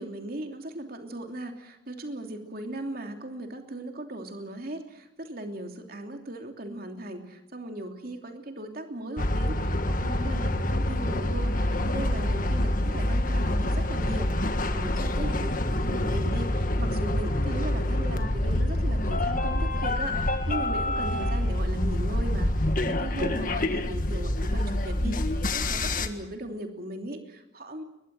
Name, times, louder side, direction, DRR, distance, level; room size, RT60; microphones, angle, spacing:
voice 1, 0.0-14.3 14.7-27.8, right 1 dB, 50° right, 4 dB, 3.0 m, -38 dB
sound 1, 9.2-26.1, left 1 dB, 45° left, 1.6 m, -26 dB
22.0 x 21.5 x 7.7 m, 0.89 s
head